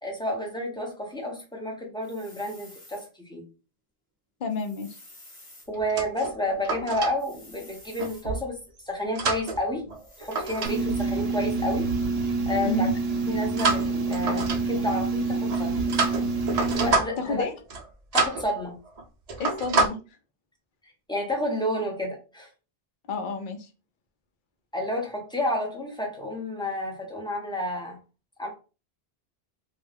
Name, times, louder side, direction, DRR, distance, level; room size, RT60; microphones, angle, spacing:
voice 1, 0.0-3.0 3.3-3.4 5.7-8.6 8.9-9.8 10.2-11.9 12.5-12.9 13.3-15.8 16.7-17.4 18.1-18.8 21.1-22.5 24.7-28.0 28.4-28.5, left 1 dB, 5° left, 0 dB, 0.5 m, -30 dB
sound 1, 2.0-3.1 4.5-5.7 7.2-8.3 9.9-10.9, left 1 dB, 25° left, 1.2 m, -51 dB
voice 2, 4.4-5.0 12.6-12.9 17.2-17.5 19.4-20.0 23.1-23.7, left 2 dB, 60° left, 6 dB, 0.7 m, -30 dB
sound 2, 5.7-7.1 8.0-8.4 8.9-10.7 11.0-11.3 13.6-14.9 15.5-17.4 17.7-17.9 18.1-18.5 18.9-19.0 19.3-19.9, right 3 dB, 50° right, 0.5 m, -28 dB
sound 3, 10.7-16.9, right 3 dB, 80° right, 0.9 m, -27 dB
2.3 x 2.2 x 3.3 m, 0.32 s
omnidirectional pair, 1.0 m